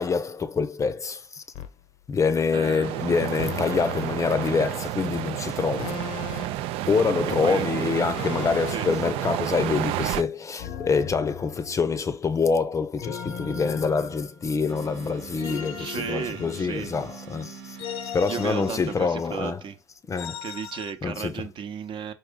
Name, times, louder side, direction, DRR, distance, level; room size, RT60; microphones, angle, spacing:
voice 1, 0.0-1.4 2.1-6.0 6.9-17.8 18.1-19.6 20.1-20.4 21.0-21.5, left 5 dB, 30° left, 0.6 m, -26 dB
sound 1, 1.5-1.8 3.4-4.1 5.8-6.7 8.2-8.9 10.6-12.0 13.0-14.6 15.4-17.0 17.8-19.3 20.2-20.9, left 8 dB, 70° left, 0.8 m, -37 dB
voice 2, 2.5-2.9 7.4-7.9 8.7-8.9 15.8-16.9 18.3-19.8 20.4-22.1, right 8 dB, 55° right, 0.8 m, -34 dB
sound 2, 2.8-10.2, right 14 dB, 70° right, 0.4 m, -30 dB
sound 3, 14.7-19.4, right 7 dB, 90° right, 1.0 m, -43 dB
4.7 x 2.6 x 3.7 m
supercardioid pair, 75°, 10 cm